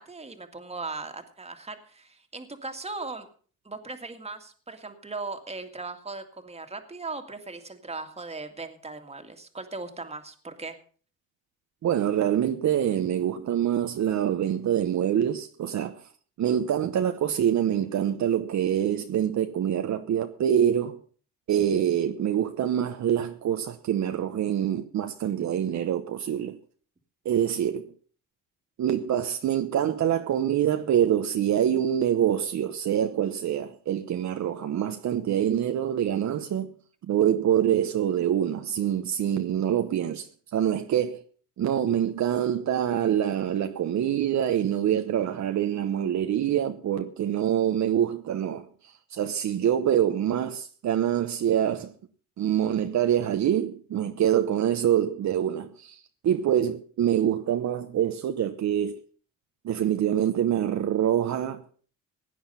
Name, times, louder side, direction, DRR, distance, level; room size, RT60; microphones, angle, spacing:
voice 1, 0.0-3.3 3.6-10.8, right 3 dB, 20° right, 2.0 m, -38 dB
voice 2, 11.8-16.0 16.4-21.0 21.5-26.6 27.2-27.9 28.8-36.7 37.1-41.2 41.6-51.9 52.4-59.0 59.6-61.6, right 10 dB, 60° right, 1.0 m, -25 dB
16.5 x 9.6 x 5.5 m
cardioid pair, 95°, 32 cm